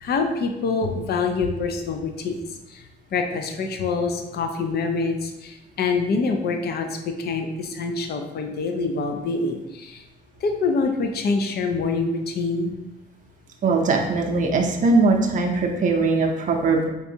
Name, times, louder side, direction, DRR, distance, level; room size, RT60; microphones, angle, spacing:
voice 1, 0.0-2.4 2.7-2.8 3.1-10.0 10.4-12.7, left 4 dB, 55° left, 5 dB, 0.5 m, -25 dB
voice 2, 13.6-16.9, right 3 dB, 40° right, 1 dB, 0.6 m, -20 dB
4.0 x 3.4 x 2.7 m, 0.94 s
cardioid pair, 90°, 20 cm